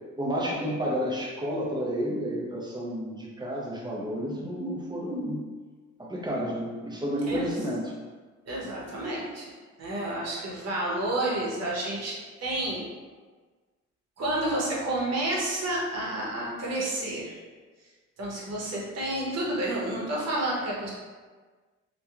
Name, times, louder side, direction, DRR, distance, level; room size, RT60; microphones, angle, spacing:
voice 1, 0.2-5.5 6.0-7.9, equal, 15° right, -4 dB, 0.6 m, -31 dB
voice 2, 8.5-9.5 9.8-12.8 14.2-17.3 18.2-20.9, right 1 dB, 55° right, -4 dB, 0.9 m, -30 dB
2.7 x 2.2 x 2.4 m, 1.4 s
cardioid pair, 90°, 30 cm